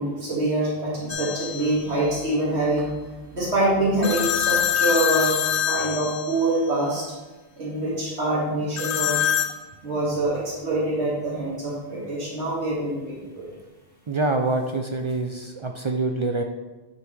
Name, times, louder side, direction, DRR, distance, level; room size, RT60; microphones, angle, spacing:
voice 1, 0.0-2.9 3.3-5.4 5.7-7.0 7.6-9.2 9.8-13.4, right 1 dB, 80° right, -6 dB, 2.3 m, -25 dB
sound 1, 1.1-1.8 4.0-6.7 8.8-9.6, left 9 dB, 90° left, 0.9 m, -25 dB
voice 2, 14.1-16.4, right 2 dB, 50° right, 4 dB, 0.3 m, -25 dB
9.8 x 5.2 x 3.3 m, 1.2 s
omnidirectional pair, 1.1 m